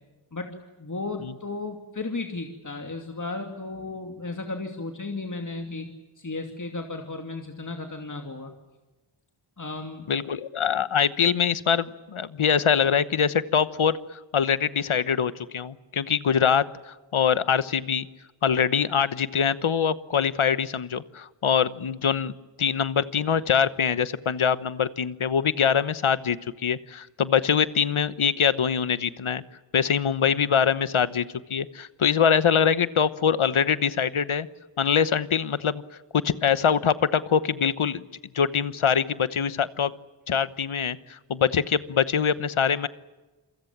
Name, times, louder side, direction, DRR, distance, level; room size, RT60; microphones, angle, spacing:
voice 1, 0.3-8.5 9.6-10.1, left 3 dB, 40° left, 4 dB, 2.7 m, -34 dB
voice 2, 10.1-18.1 18.4-22.3 22.6-29.4 29.7-34.5 34.8-35.8 36.2-38.0 38.3-39.9 40.3-42.9, left 7 dB, 80° left, 15 dB, 1.1 m, -24 dB
28.0 x 23.5 x 7.4 m, 1.2 s
wide cardioid pair, 65°, 48 cm